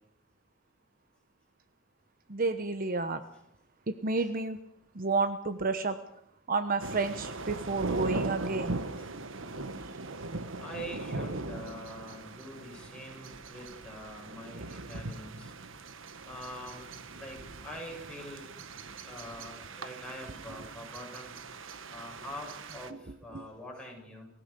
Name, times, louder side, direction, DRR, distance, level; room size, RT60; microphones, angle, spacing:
voice 1, 2.3-3.2 4.0-4.6 5.0-6.0 6.5-8.8 23.3-23.4, right 3 dB, 45° right, 10 dB, 1.0 m, -30 dB
sound 1, 6.8-22.9, right 2 dB, 75° right, 1.3 m, -39 dB
voice 2, 10.6-15.5 16.2-18.5 19.0-21.3 21.9-24.3, equal, 5° left, -1 dB, 7.6 m, -45 dB
30.0 x 16.0 x 6.8 m, 0.76 s
head